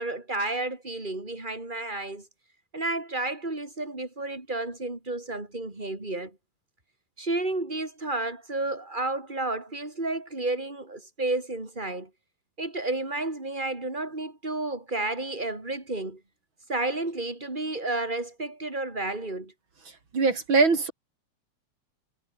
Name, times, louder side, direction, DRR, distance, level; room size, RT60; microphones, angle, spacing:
voice 1, 0.0-2.3 2.7-6.4 7.2-12.1 12.6-16.2 16.7-19.5, right 2 dB, 15° right, 4.5 m, -31 dB
voice 2, 20.1-20.9, right 4 dB, 40° right, 3.6 m, -21 dB
omnidirectional pair, 3.6 m